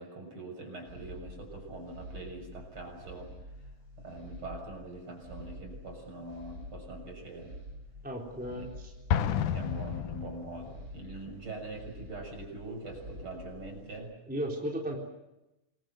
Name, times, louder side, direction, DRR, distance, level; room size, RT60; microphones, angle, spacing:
voice 1, 0.0-3.3 4.0-7.6 8.5-8.7 9.4-14.1, right 2 dB, 40° right, 3 dB, 7.4 m, -43 dB
sound 1, 0.8-14.0, equal, 25° right, 5.7 m, -48 dB
voice 2, 8.0-8.9 14.3-15.0, equal, 5° right, -1 dB, 3.6 m, -35 dB
Explosion, 9.1-10.9, left 8 dB, 75° left, 2.6 m, -31 dB
27.0 x 23.0 x 7.9 m, 0.96 s
omnidirectional pair, 3.7 m